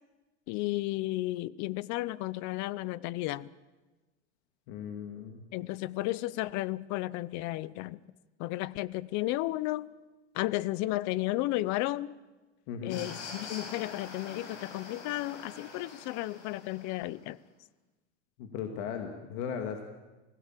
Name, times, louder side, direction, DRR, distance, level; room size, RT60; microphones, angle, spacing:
voice 1, 0.5-3.5 5.5-8.0 8.4-9.9 10.3-12.1 12.8-17.4, left 17 dB, 55° left, 20 dB, 0.8 m, -33 dB
voice 2, 4.7-5.4 12.7-13.0 18.4-19.8, left 7 dB, 70° left, 5 dB, 2.4 m, -37 dB
sound 1, 12.9-17.1, left 4 dB, 90° left, 5.3 m, -45 dB
26.0 x 17.0 x 7.5 m, 1.2 s
supercardioid pair, 130°, 35 cm